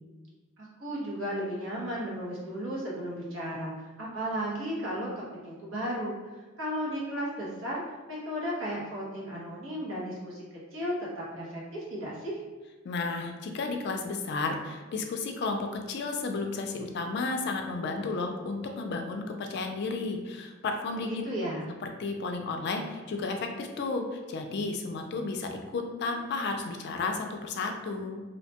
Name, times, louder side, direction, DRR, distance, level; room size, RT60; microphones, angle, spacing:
voice 1, 0.6-6.1 6.6-7.8 8.1-10.4 10.7-10.9 11.3-12.4 21.1-21.7, equal, 75° right, -6 dB, 0.9 m, -34 dB
voice 2, 12.8-21.2 21.8-28.2, left 3 dB, 60° left, 4 dB, 0.4 m, -33 dB
2.7 x 2.2 x 2.7 m, 1.3 s
head